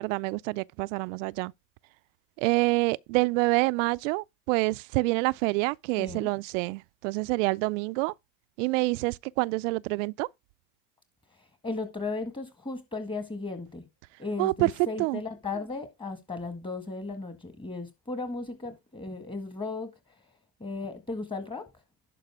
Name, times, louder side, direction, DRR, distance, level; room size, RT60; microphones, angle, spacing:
voice 1, 0.0-1.5 2.4-8.1 8.6-10.3 14.4-14.7 15.0-15.2, right 24 dB, 70° right, 0.5 m, -27 dB
voice 2, 6.0-6.3 11.3-13.9 14.2-21.7, left 3 dB, 10° left, 1.7 m, -36 dB
11.0 x 5.3 x 3.5 m
supercardioid pair, 115°, 39 cm